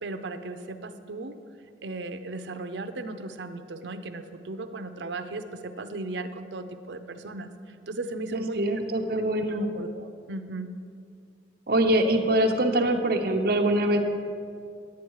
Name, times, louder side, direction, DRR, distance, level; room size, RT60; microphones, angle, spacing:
voice 1, 0.0-1.4 1.8-8.6 9.5-10.7, right 2 dB, 90° right, 9 dB, 0.6 m, -36 dB
voice 2, 8.3-9.7 11.7-14.0, right 1 dB, 60° right, 3 dB, 0.9 m, -24 dB
10.5 x 9.4 x 4.7 m, 2.3 s
head